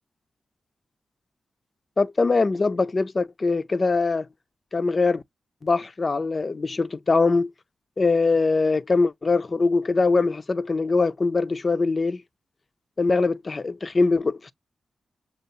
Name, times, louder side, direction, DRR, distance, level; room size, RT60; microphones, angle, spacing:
voice 1, 2.0-4.3 4.7-5.2 5.6-7.5 8.0-12.2 13.0-14.5, left 3 dB, 45° left, 0.3 m, -22 dB
5.4 x 2.3 x 2.7 m
cardioid pair, 50°, 0 cm